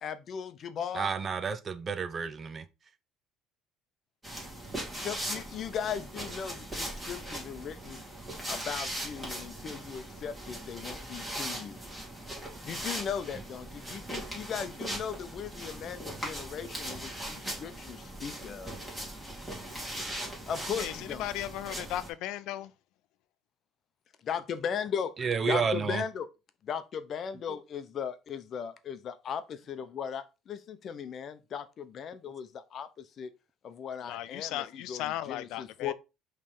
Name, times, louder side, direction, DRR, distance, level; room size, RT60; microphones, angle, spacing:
voice 1, 0.0-1.3 5.0-8.0 8.5-11.8 12.6-18.7 20.5-21.3 24.2-26.3 26.6-33.3 33.6-35.9, left 7 dB, 45° left, 0.7 m, -37 dB
voice 2, 0.9-2.7 25.2-26.0, right 5 dB, 30° right, 0.6 m, -30 dB
sound 1, 4.2-22.1, right 1 dB, 5° right, 2.7 m, -39 dB
voice 3, 21.2-22.7 34.1-35.9, left 13 dB, 75° left, 0.4 m, -36 dB
5.4 x 3.3 x 5.3 m
cardioid pair, 130°, 0 cm